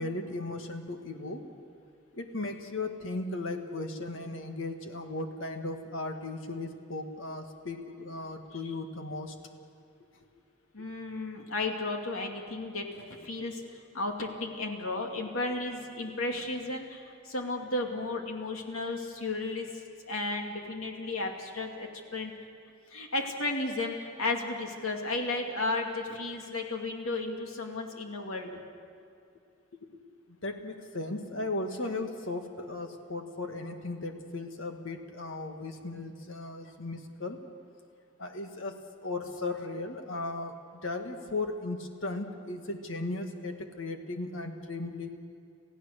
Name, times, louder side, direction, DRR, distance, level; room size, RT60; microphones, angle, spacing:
voice 1, 0.0-1.4 2.1-9.4 29.8-29.9 30.3-37.4 38.2-38.7 39.0-40.6 40.8-45.1, left 2 dB, 70° left, 5 dB, 1.8 m, -36 dB
voice 2, 10.7-19.7 20.1-22.3 22.9-28.6, left 2 dB, 85° left, 2 dB, 2.5 m, -34 dB
28.0 x 15.5 x 6.7 m, 2.5 s
head